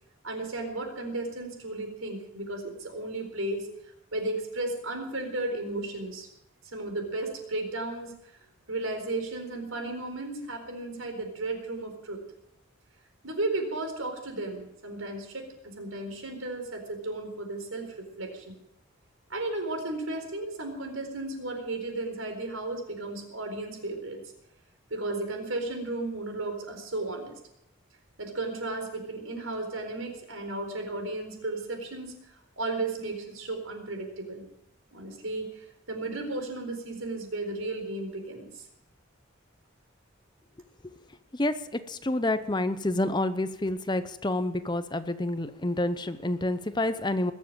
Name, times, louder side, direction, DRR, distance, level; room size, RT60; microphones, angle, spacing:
voice 1, 0.2-3.7 4.1-6.3 6.7-8.2 8.7-12.2 13.2-18.5 19.3-24.2 24.9-27.4 28.2-32.1 32.6-34.5 34.9-38.7, right 2 dB, 85° right, 4 dB, 4.1 m, -34 dB
voice 2, 41.3-47.3, left 1 dB, 20° left, 12 dB, 0.7 m, -28 dB
21.0 x 7.4 x 8.9 m, 0.81 s
head